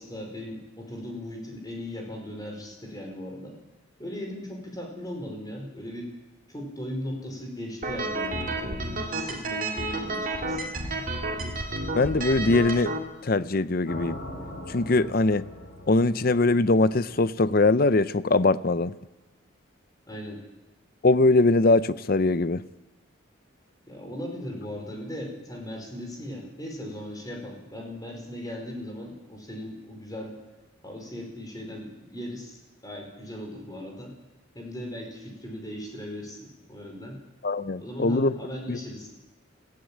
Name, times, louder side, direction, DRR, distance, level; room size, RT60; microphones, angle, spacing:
voice 1, 0.0-3.6 4.0-6.1 6.5-10.7 20.1-20.4 23.9-30.4 30.8-34.1 34.5-37.2 37.8-39.1, left 1 dB, 20° left, 1 dB, 4.8 m, -38 dB
sound 1, 7.8-13.0, right 2 dB, 45° right, 2.3 m, -31 dB
voice 2, 11.9-12.9 13.2-14.2 14.7-15.4 15.9-18.9 21.0-22.6 37.4-38.3 38.7-38.8, left 2 dB, 45° left, 15 dB, 0.6 m, -22 dB
sound 2, 13.9-17.9, left 1 dB, 80° left, 6.8 m, -41 dB
20.5 x 15.5 x 8.7 m, 1.1 s
head